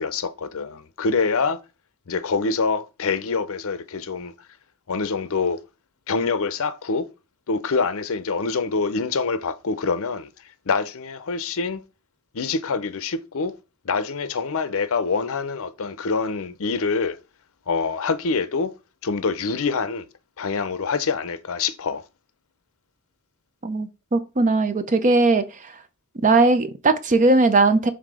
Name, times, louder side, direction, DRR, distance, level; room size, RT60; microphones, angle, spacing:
voice 1, 0.0-1.6 2.1-4.3 4.9-5.6 6.1-7.1 7.5-10.3 10.7-11.8 12.3-13.6 13.8-17.2 17.7-18.7 19.0-20.1 20.4-22.0, left 4 dB, 65° left, 0.6 m, -25 dB
voice 2, 23.6-25.5 26.2-27.9, right 3 dB, 35° right, 0.7 m, -18 dB
5.7 x 3.6 x 4.8 m
head